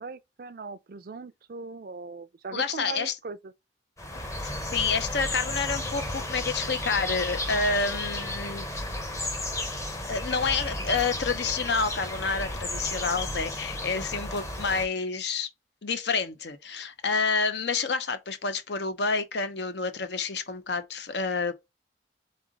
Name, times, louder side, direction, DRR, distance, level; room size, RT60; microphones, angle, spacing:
voice 1, 0.0-3.5, right 4 dB, 50° right, 0.4 m, -40 dB
voice 2, 2.5-3.2 4.4-8.7 10.1-15.5 15.8-21.5, left 4 dB, 65° left, 0.7 m, -29 dB
sound 1, 4.0-14.9, left 1 dB, 15° left, 0.8 m, -33 dB
3.7 x 3.3 x 3.7 m
head